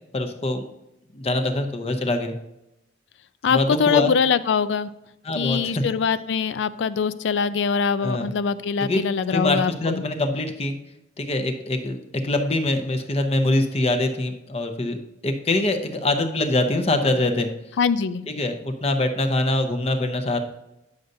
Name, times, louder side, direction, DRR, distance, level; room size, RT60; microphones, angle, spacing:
voice 1, 0.1-0.6 1.1-2.3 3.5-4.1 5.2-5.6 8.0-8.3 8.8-9.0 9.3-10.8 11.2-12.0 12.2-15.0 15.2-17.5 18.3-20.4, left 2 dB, 35° left, 6 dB, 0.7 m, -24 dB
voice 2, 3.4-4.9 5.3-10.0 17.8-18.2, left 6 dB, 80° left, 14 dB, 0.4 m, -23 dB
9.3 x 6.5 x 2.7 m, 0.89 s
head